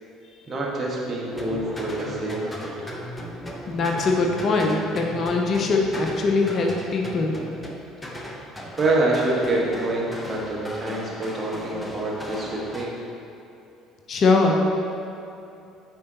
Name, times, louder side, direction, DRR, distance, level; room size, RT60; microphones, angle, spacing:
voice 1, 0.5-2.7 8.8-13.0, right 2 dB, 30° right, -4 dB, 1.4 m, -26 dB
sound 1, 1.3-12.9, equal, 15° left, 0.8 m, -37 dB
voice 2, 3.7-7.4 14.1-14.6, left 3 dB, 40° left, 2 dB, 0.6 m, -22 dB
9.5 x 4.3 x 2.9 m, 2.7 s
figure-of-eight pair, 55°, 0 cm